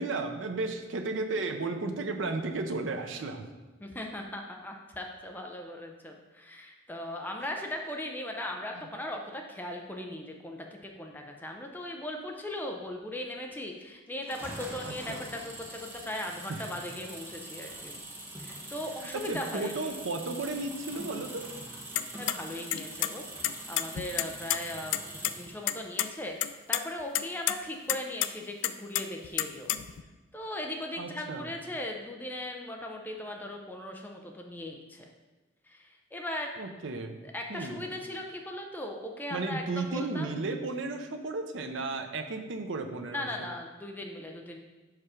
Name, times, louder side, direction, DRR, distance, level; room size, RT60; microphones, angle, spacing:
voice 1, 0.0-3.4 14.8-15.2 16.5-16.6 19.1-21.5 31.0-31.5 36.6-37.2 37.5-37.8 39.3-43.5, right 3 dB, 85° right, 6 dB, 0.6 m, -34 dB
voice 2, 3.8-17.9 18.4-19.9 22.2-29.7 30.3-35.1 35.6-36.6 37.2-40.3 43.1-44.6, left 1 dB, 10° left, 1 dB, 0.5 m, -38 dB
sound 1, 14.2-25.6, right 1 dB, 10° right, 0.9 m, -43 dB
sound 2, 22.0-22.3 22.7-23.1 23.4-24.6 24.9-25.0 25.2-25.3 25.7-26.1 26.4-26.8 27.1-27.5 27.9-28.3 28.6-30.0, left 13 dB, 80° left, 0.3 m, -28 dB
5.7 x 4.8 x 4.9 m, 1.2 s
head